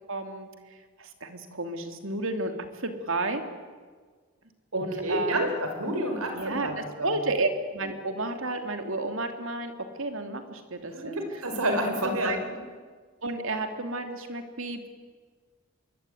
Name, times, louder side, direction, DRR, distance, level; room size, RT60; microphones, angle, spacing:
voice 1, 0.1-0.5 1.0-2.5 2.8-3.4 4.7-5.5 6.3-9.7 10.0-11.1 12.0-12.4 13.2-14.9, right 2 dB, 65° right, 6 dB, 2.9 m, -31 dB
voice 2, 4.7-7.2 10.9-12.4, right 1 dB, 90° right, 5 dB, 5.4 m, -29 dB
25.5 x 23.0 x 9.4 m, 1.5 s
head